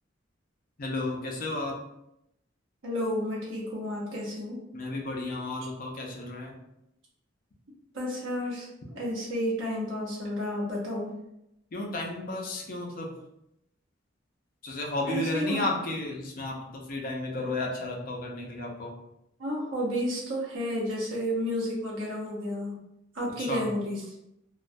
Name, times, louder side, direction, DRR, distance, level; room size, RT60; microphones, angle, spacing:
voice 1, 0.8-1.7 4.7-6.6 11.7-13.1 14.6-18.9 23.4-23.6, left 2 dB, 45° left, 0 dB, 0.5 m, -33 dB
voice 2, 2.8-4.6 7.9-8.7 8.9-11.1 15.0-15.6 19.4-22.8 23.1-24.0, equal, 80° right, -4 dB, 0.8 m, -31 dB
2.3 x 2.2 x 2.6 m, 0.82 s
head